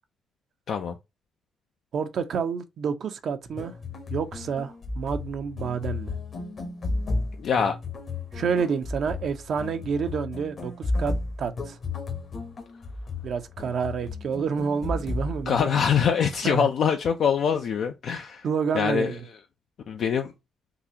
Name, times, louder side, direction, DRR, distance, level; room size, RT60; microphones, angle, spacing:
voice 1, 1.9-3.7 4.1-6.1 8.3-10.7 11.0-11.8 13.2-15.7 16.4-16.7 18.4-19.2, right 6 dB, 60° right, 0.6 m, -29 dB
sound 1, 3.4-15.8, left 3 dB, 45° left, 0.9 m, -33 dB
voice 2, 7.4-7.8 15.5-18.5 18.7-19.2 19.9-20.3, left 7 dB, 65° left, 0.4 m, -24 dB
3.8 x 2.4 x 2.7 m
cardioid pair, 90°, 0 cm